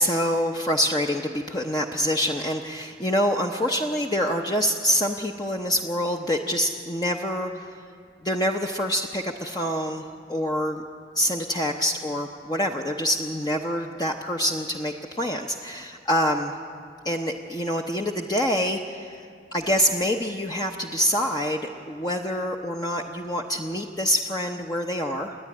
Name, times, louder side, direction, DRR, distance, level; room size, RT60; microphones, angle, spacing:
voice 1, 0.0-7.8 8.2-10.0 10.3-10.8 11.2-16.5 17.0-25.4, equal, 20° left, 2 dB, 0.8 m, -26 dB
29.0 x 10.0 x 9.6 m, 2.2 s
head